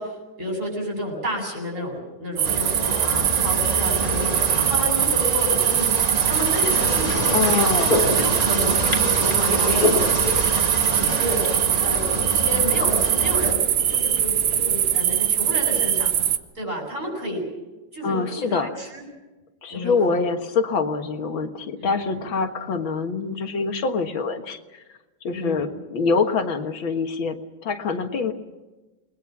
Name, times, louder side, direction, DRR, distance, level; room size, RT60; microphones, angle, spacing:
voice 1, 0.0-7.7 8.1-10.1 10.9-11.5 11.8-16.1 16.6-17.5 17.9-19.0 19.7-20.0 21.8-22.2 25.3-25.7, equal, 40° right, 1 dB, 8.5 m, -31 dB
sound 1, 2.4-13.5, right 2 dB, 20° right, 1.4 m, -27 dB
sound 2, 2.4-16.4, right 10 dB, 75° right, 1.8 m, -22 dB
sound 3, 6.7-15.0, left 3 dB, 45° left, 3.2 m, -30 dB
voice 2, 7.3-7.9 18.0-18.7 19.6-24.8 25.2-27.4 27.6-28.3, left 4 dB, 75° left, 6 dB, 2.3 m, -25 dB
29.0 x 21.0 x 6.0 m, 1.1 s
omnidirectional pair, 2.2 m